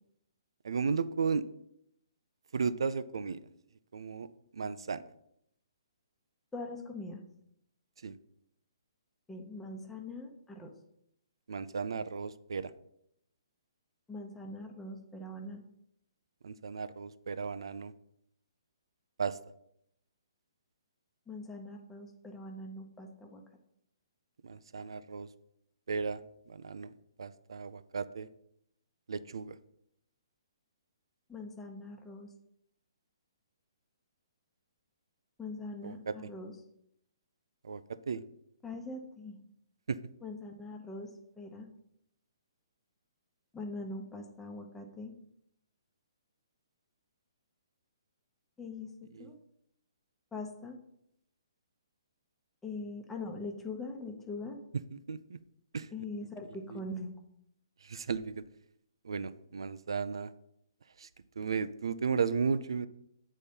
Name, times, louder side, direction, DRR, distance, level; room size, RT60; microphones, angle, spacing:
voice 1, 0.6-1.4 2.5-3.4 3.9-4.3 4.5-5.0 8.0-8.1 11.5-12.7 16.4-17.9 19.2-19.4 24.4-25.3 25.9-26.2 26.5-26.9 27.2-28.3 29.1-29.5 35.8-36.1 37.6-37.8 38.1-38.2 39.9-40.0 49.1-49.3 54.9-55.4 55.7-55.9 56.7-56.8 57.8-58.4 59.0-60.3 61.0-61.1 61.4-62.9, right 5 dB, 75° right, 14 dB, 0.4 m, -34 dB
voice 2, 6.5-7.2 9.3-10.7 14.1-15.6 21.3-23.4 31.3-32.3 35.4-36.5 38.6-39.4 40.2-41.1 41.4-41.7 43.5-45.1 48.6-48.9 49.2-49.4 50.3-50.8 52.6-54.6 55.9-57.2, left 2 dB, 10° left, 2 dB, 1.0 m, -42 dB
8.3 x 4.2 x 5.2 m, 0.75 s
hypercardioid pair, 140°, 3 cm